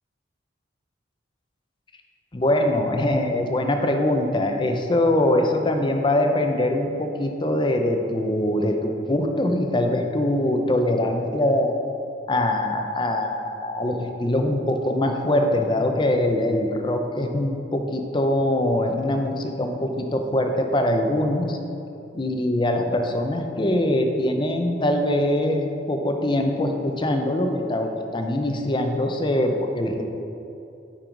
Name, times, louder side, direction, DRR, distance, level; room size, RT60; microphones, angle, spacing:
voice 1, 2.3-11.7 12.3-21.6 22.1-30.0, left 1 dB, 25° left, 4 dB, 0.6 m, -23 dB
9.2 x 5.5 x 3.9 m, 2.7 s
head